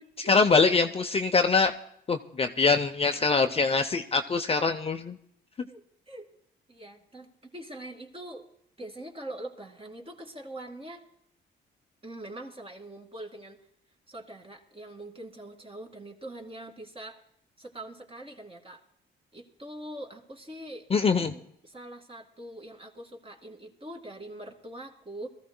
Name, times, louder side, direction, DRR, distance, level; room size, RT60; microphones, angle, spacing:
voice 1, 0.2-1.7 2.1-5.2 20.9-21.3, left 4 dB, 30° left, 6 dB, 0.7 m, -24 dB
voice 2, 5.7-6.3 6.7-8.5 8.8-11.0 12.0-13.6 14.1-17.2 17.6-18.8 19.3-20.9 21.2-25.3, right 1 dB, 30° right, 1 dB, 2.3 m, -43 dB
21.5 x 14.5 x 2.2 m, 0.73 s
cardioid pair, 90°, 20 cm